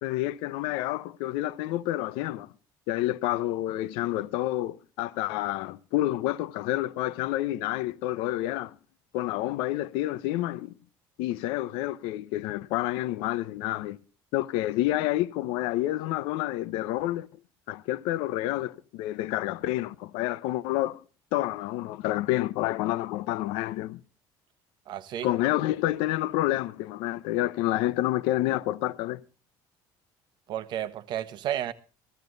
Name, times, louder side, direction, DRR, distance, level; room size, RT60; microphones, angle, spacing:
voice 1, 0.0-2.5 2.9-8.8 9.1-10.7 11.2-14.0 14.3-17.3 17.7-21.0 21.3-24.0 25.2-29.2, left 15 dB, 85° left, 0.7 m, -29 dB
voice 2, 24.9-25.3 30.5-31.7, right 11 dB, 55° right, 1.2 m, -32 dB
15.5 x 13.5 x 3.9 m
cardioid pair, 125°, 9 cm